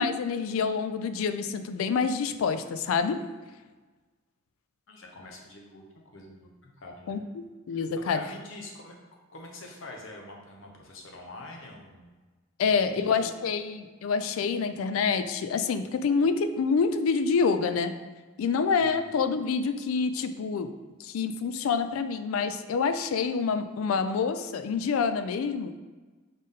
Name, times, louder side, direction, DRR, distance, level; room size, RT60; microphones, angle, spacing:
voice 1, 0.0-3.3 7.1-8.2 12.6-17.9 18.4-20.7 21.0-25.8, left 5 dB, 85° left, 10 dB, 0.3 m, -27 dB
voice 2, 4.9-5.8 6.1-6.5 6.8-7.2 7.7-9.0 9.3-12.1 12.6-13.5 18.8-19.1, left 2 dB, 70° left, 0 dB, 0.8 m, -45 dB
4.0 x 3.7 x 3.6 m, 1.3 s
head